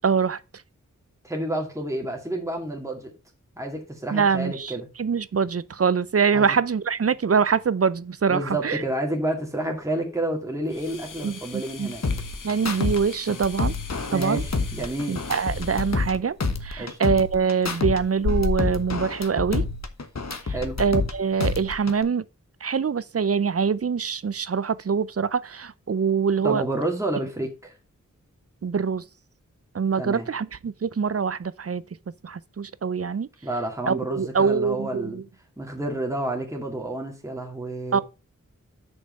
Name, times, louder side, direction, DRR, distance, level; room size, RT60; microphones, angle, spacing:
voice 1, 0.0-0.4 4.1-4.7 5.0-8.8 11.2-11.9 12.4-13.7 14.1-14.4 15.1-16.4 16.6-19.7 20.5-22.2 22.6-26.6 28.6-29.0 29.7-31.8 32.2-33.3 33.8-35.2 37.9-38.0, right 6 dB, 50° right, 0.6 m, -24 dB
voice 2, 1.2-3.1 3.6-4.9 6.3-6.6 8.3-12.0 14.1-15.2 16.8-17.0 20.4-20.8 26.4-27.7 30.0-30.3 33.4-35.2 35.6-38.0, right 1 dB, 10° right, 2.2 m, -29 dB
sound 1, 10.6-18.8, left 4 dB, 90° left, 1.1 m, -36 dB
sound 2, 12.0-13.0 13.3-16.1 16.4-18.0 18.3-21.1 21.4-22.0, left 4 dB, 60° left, 1.2 m, -28 dB
6.6 x 5.5 x 6.4 m
wide cardioid pair, 65°, 31 cm